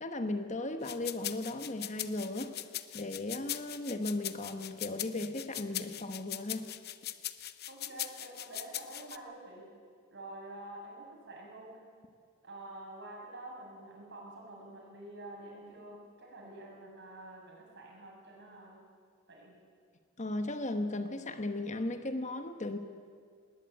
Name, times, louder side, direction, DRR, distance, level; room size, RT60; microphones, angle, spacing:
voice 1, 0.0-2.5 2.9-6.7 20.2-22.8, left 2 dB, 35° left, 8 dB, 1.2 m, -36 dB
sound 1, 0.8-9.2, left 13 dB, 50° left, 0.8 m, -40 dB
voice 2, 7.7-9.7 10.1-11.8 12.4-18.8 19.3-19.5, right 2 dB, 55° right, -1 dB, 6.9 m, -48 dB
19.5 x 19.0 x 9.1 m, 2.1 s
head